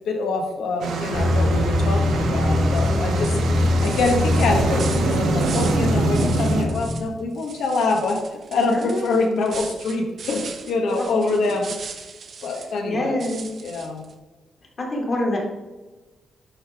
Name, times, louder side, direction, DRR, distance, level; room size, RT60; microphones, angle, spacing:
voice 1, 0.1-11.8 12.4-13.2 13.6-14.0, left 3 dB, 85° left, 2 dB, 1.5 m, -25 dB
sound 1, 0.8-6.6, right 3 dB, 80° right, 1.1 m, -25 dB
sound 2, 1.1-7.0, left 2 dB, ahead, 1.3 m, -22 dB
sound 3, 2.7-2.9 3.2-5.8 6.1-7.1 7.3-12.8 13.2-14.1, right 5 dB, 45° right, 0.7 m, -39 dB
voice 2, 8.7-9.1 10.9-11.1 12.5-13.5 14.8-15.4, left 1 dB, 35° left, -1 dB, 1.9 m, -26 dB
10.5 x 4.0 x 3.6 m, 1.2 s
wide cardioid pair, 160°, 0 cm